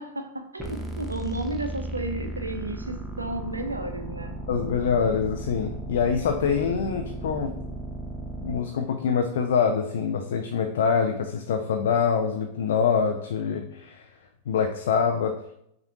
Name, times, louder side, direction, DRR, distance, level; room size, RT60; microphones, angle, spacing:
voice 1, 0.0-4.4, right 1 dB, 80° right, 6 dB, 0.5 m, -33 dB
sound 1, 0.6-8.6, right 2 dB, 10° right, 0.7 m, -35 dB
voice 2, 4.5-7.5 8.4-14.1 14.5-15.3, left 6 dB, 60° left, 4 dB, 0.4 m, -25 dB
6.0 x 2.5 x 3.0 m, 0.73 s
figure-of-eight pair, 90°, 0 cm